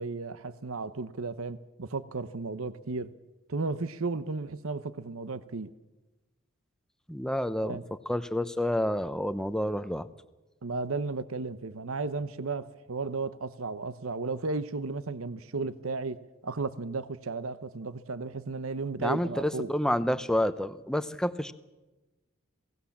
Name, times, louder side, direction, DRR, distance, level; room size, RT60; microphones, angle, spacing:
voice 1, 0.0-3.1 3.5-5.7 7.6-7.8 10.6-16.2 16.4-19.7, right 3 dB, 80° right, 14 dB, 0.9 m, -34 dB
voice 2, 7.1-7.8 8.1-10.1 19.0-21.5, left 1 dB, 5° left, 12 dB, 0.7 m, -29 dB
27.5 x 18.0 x 7.3 m, 1.1 s
head